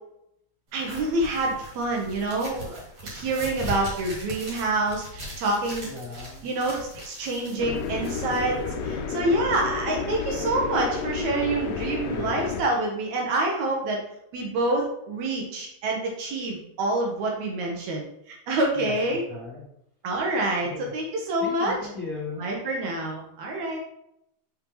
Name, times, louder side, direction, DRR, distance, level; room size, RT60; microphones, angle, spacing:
voice 1, 0.7-5.9 6.4-8.6 8.8-14.0 14.3-19.2 20.0-21.7 22.4-23.8, right 2 dB, 70° right, -1 dB, 2.2 m, -27 dB
sound 1, 0.8-8.9, equal, 45° right, 3.2 m, -40 dB
voice 2, 5.8-6.5 12.0-12.6 18.7-19.6 20.6-20.9 21.4-22.5, left 3 dB, 30° left, -8 dB, 2.1 m, -37 dB
sound 2, 7.6-12.6, left 5 dB, 80° left, 1.6 m, -31 dB
5.7 x 5.5 x 3.0 m, 0.77 s
omnidirectional pair, 3.6 m